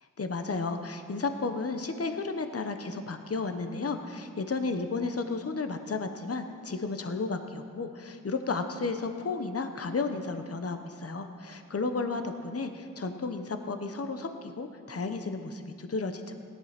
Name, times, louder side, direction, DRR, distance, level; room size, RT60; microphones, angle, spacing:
voice 1, 0.2-16.3, left 3 dB, 45° left, 7 dB, 0.9 m, -33 dB
17.0 x 10.5 x 5.9 m, 2.2 s
wide cardioid pair, 90°, 32 cm